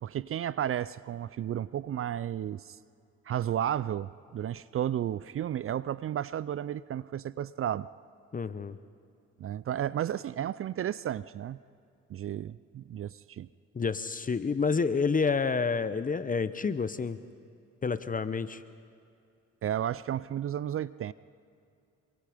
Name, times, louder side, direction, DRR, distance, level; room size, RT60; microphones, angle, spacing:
voice 1, 0.0-2.8 3.3-7.9 9.4-11.6 12.1-13.5 19.6-21.1, right 10 dB, 45° right, 18 dB, 0.4 m, -33 dB
voice 2, 8.3-8.8 13.7-17.2 17.8-18.6, left 5 dB, 30° left, 13 dB, 0.8 m, -29 dB
27.0 x 23.0 x 5.1 m, 2.4 s
cardioid pair, 90°, 30 cm